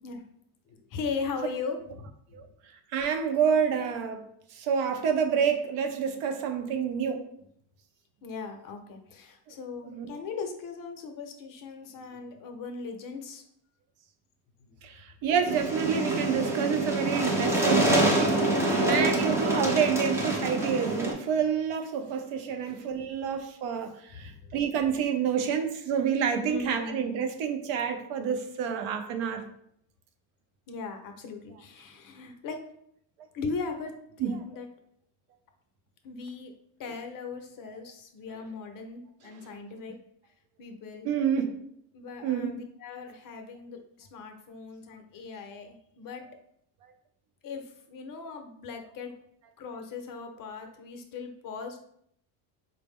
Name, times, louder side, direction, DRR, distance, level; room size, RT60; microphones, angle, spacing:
voice 1, 0.7-2.4 8.2-13.4 14.6-14.8 18.8-19.3 23.2-23.3 24.1-24.5 26.4-27.1 30.7-32.6 33.3-34.7 36.0-36.5 36.8-40.0 40.6-41.1 41.9-46.2 47.4-49.1 49.6-51.8, left 4 dB, 45° left, 5 dB, 0.5 m, -39 dB
voice 2, 2.9-4.2 4.5-7.3 9.8-10.1 14.8-29.4 34.2-34.3 38.3-38.4 41.0-41.6 42.2-42.6, right 7 dB, 90° right, 6 dB, 0.7 m, -28 dB
sound 1, 15.5-21.1, right 1 dB, 5° right, 0.3 m, -26 dB
4.2 x 2.0 x 3.5 m, 0.70 s
cardioid pair, 130°, 50 cm